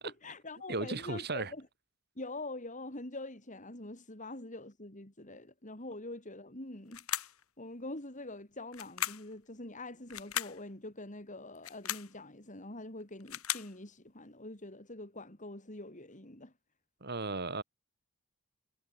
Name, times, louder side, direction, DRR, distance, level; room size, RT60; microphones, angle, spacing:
voice 1, 0.0-1.7 2.2-7.1 7.6-16.5, left 2 dB, 35° left, 3.8 m, -45 dB
voice 2, 0.7-1.5 17.0-17.6, right 3 dB, 45° right, 3.1 m, -35 dB
sound 1, 6.9-7.4 8.7-9.3 10.1-10.6 11.5-12.1 13.0-13.7, left 11 dB, 70° left, 3.8 m, -37 dB
head